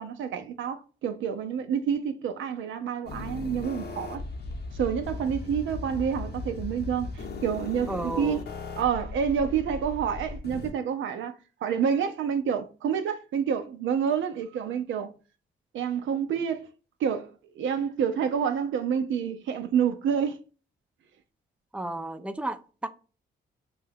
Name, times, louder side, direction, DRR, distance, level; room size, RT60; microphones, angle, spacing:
voice 1, 0.0-4.2 4.7-8.4 8.8-11.3 11.6-15.1 15.7-16.7 17.0-20.4, right 7 dB, 70° right, 0.5 m, -28 dB
sound 1, 3.1-10.7, left 3 dB, 55° left, 0.7 m, -37 dB
voice 2, 7.9-8.4 21.7-22.9, right 2 dB, 5° right, 0.4 m, -33 dB
2.6 x 2.3 x 3.4 m
supercardioid pair, 60°, 21 cm